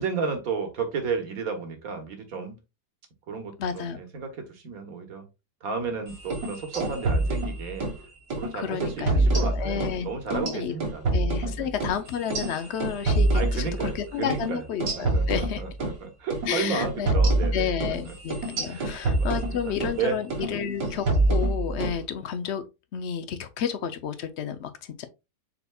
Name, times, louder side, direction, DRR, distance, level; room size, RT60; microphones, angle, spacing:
voice 1, 0.0-2.6 3.3-5.3 5.6-7.9 8.4-11.2 11.6-11.7 13.3-14.6 15.0-17.7 18.7-20.2 20.5-20.6, right 5 dB, 60° right, 1.5 m, -33 dB
voice 2, 3.6-4.0 8.5-10.7 11.1-15.6 16.5-17.1 17.5-22.6 22.9-25.1, left 8 dB, 75° left, 0.6 m, -31 dB
sound 1, 6.2-8.0 8.3-8.5 8.8-10.0 10.3-14.0 14.3-14.5 14.8-16.0 16.3-16.5 16.8-20.0 20.3-20.5 20.8-22.0, right 2 dB, 85° right, 2.2 m, -26 dB
5.5 x 4.2 x 2.3 m
omnidirectional pair, 1.8 m